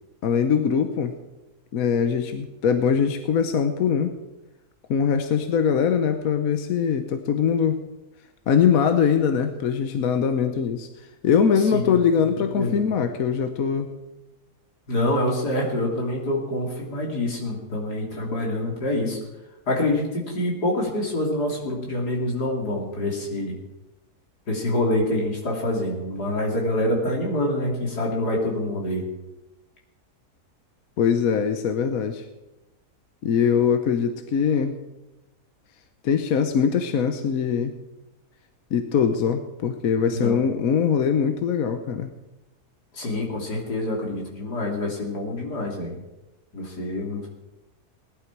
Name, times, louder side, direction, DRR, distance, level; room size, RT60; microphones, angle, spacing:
voice 1, 0.2-1.1 1.7-4.1 4.9-7.8 8.5-10.9 11.2-13.9 31.0-32.3 33.2-34.7 36.0-37.7 38.7-42.1, left 7 dB, 65° left, 7 dB, 1.3 m, -22 dB
voice 2, 14.9-19.2 19.7-23.5 24.5-29.0 40.1-40.4 42.9-46.0 46.5-47.3, left 1 dB, 85° left, -1 dB, 3.6 m, -26 dB
19.0 x 11.5 x 4.7 m, 1.0 s
omnidirectional pair, 1.7 m